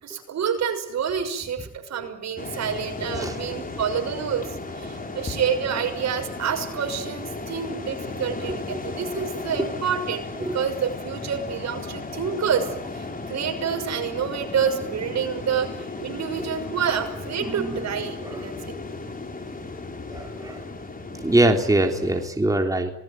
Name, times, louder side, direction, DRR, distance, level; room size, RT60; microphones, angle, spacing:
voice 1, 0.0-18.6, right 7 dB, 60° right, 6 dB, 6.4 m, -28 dB
sound 1, 2.4-22.3, left 3 dB, 30° left, 4.6 m, -35 dB
voice 2, 17.5-17.8 18.2-18.4 20.1-20.6 21.2-22.9, right 1 dB, 10° right, 3 dB, 3.6 m, -23 dB
26.0 x 20.0 x 9.6 m, 0.72 s
cardioid pair, 90°, 30 cm